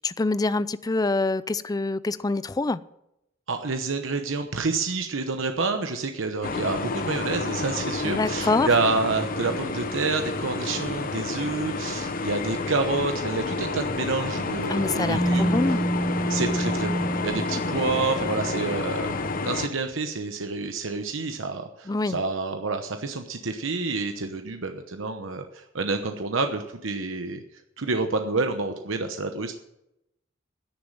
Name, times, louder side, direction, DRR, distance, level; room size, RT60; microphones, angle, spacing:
voice 1, 0.0-2.8 8.0-8.7 14.7-15.9 21.9-22.2, left 3 dB, 20° left, 0.4 m, -25 dB
voice 2, 3.5-15.6 16.3-27.4 27.8-29.5, right 3 dB, 70° right, 1.0 m, -28 dB
sound 1, 6.4-19.7, left 3 dB, 45° left, 0.9 m, -30 dB
sound 2, 15.1-19.0, right 1 dB, 75° left, 3.1 m, -28 dB
10.5 x 9.8 x 7.5 m
head